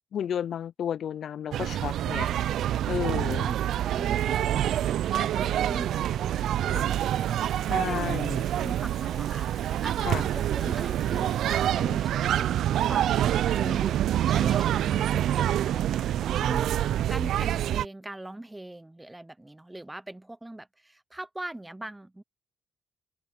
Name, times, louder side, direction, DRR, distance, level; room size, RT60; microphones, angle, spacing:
voice 1, 0.1-2.3 2.9-3.5 7.7-8.4 10.0-10.2, left 9 dB, 60° left, 0.3 m, -32 dB
sound 1, 1.5-17.8, right 11 dB, 80° right, 0.4 m, -26 dB
voice 2, 2.9-12.5 12.9-16.8 17.1-22.2, right 1 dB, 10° right, 0.7 m, -41 dB
Water tap faucet / Liquid, 6.0-11.7, left 5 dB, 40° left, 0.8 m, -51 dB
cardioid pair, 125°, 0 cm